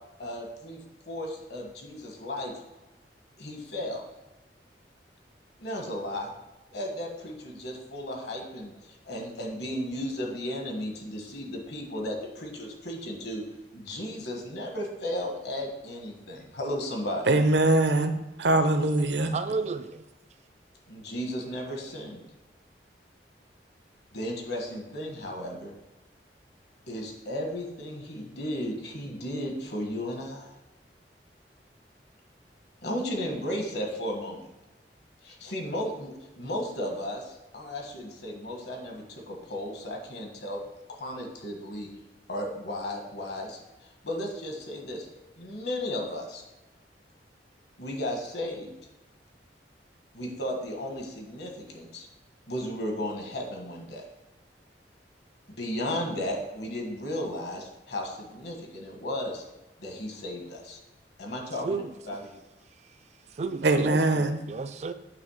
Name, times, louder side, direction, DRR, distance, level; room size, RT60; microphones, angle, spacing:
voice 1, 0.2-0.8 1.1-2.5 3.4-4.0 5.6-6.3 6.7-13.4 13.7-17.2 20.9-22.2 24.1-25.7 26.9-30.5 32.8-34.5 35.2-40.6 40.9-41.9 42.3-43.6 44.0-45.1 45.4-46.4 47.8-48.7 50.1-52.1 52.5-54.0 55.5-59.4 59.8-60.8 61.2-62.3, left 1 dB, 70° left, 1.5 m, -34 dB
voice 2, 17.3-19.3 63.6-64.4, right 2 dB, 75° right, 0.7 m, -23 dB
voice 3, 19.3-20.0 61.6-61.8 63.4-64.9, right 4 dB, 40° right, 0.4 m, -32 dB
8.7 x 3.2 x 6.4 m
head